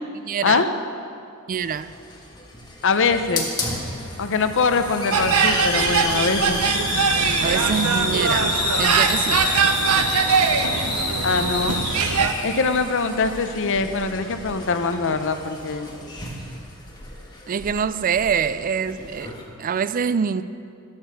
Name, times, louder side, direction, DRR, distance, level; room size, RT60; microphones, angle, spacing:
voice 1, 0.2-0.6 1.5-1.9 7.4-8.5 8.8-9.5 17.5-20.4, right 6 dB, 40° right, 14 dB, 0.3 m, -25 dB
Hiss, 1.5-19.4, left 2 dB, 20° left, 1.7 m, -29 dB
voice 2, 2.8-3.5 4.2-6.6 11.2-11.8 12.4-15.9, left 4 dB, 60° left, 8 dB, 0.7 m, -22 dB
sound 1, 5.1-12.3, right 5 dB, 85° right, 0.7 m, -22 dB
12.0 x 8.7 x 6.6 m, 2.4 s
head